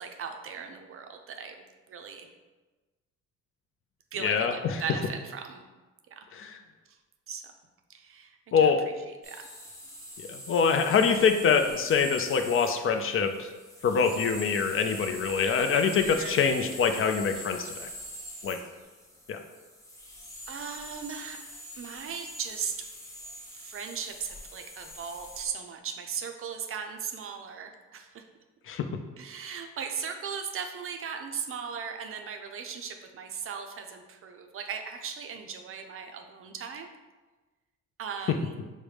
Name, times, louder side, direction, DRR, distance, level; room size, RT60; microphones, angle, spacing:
voice 1, 0.0-2.3 4.1-5.6 6.1-6.3 7.3-7.5 7.9-8.7 9.1-9.5 16.2-16.3 20.5-21.4 21.8-22.9 23.5-28.3 29.2-36.9 38.0-38.6, right 6 dB, 45° right, 5 dB, 0.5 m, -38 dB
voice 2, 4.2-4.8 6.3-6.6 8.5-8.8 10.2-13.5 13.8-17.9 18.4-18.6 19.3-19.4 28.7-28.8, left 6 dB, 45° left, 6 dB, 0.4 m, -25 dB
sound 1, 9.2-25.5, equal, 10° left, 0.8 m, -44 dB
4.7 x 2.1 x 3.2 m, 1.2 s
cardioid pair, 90°, 30 cm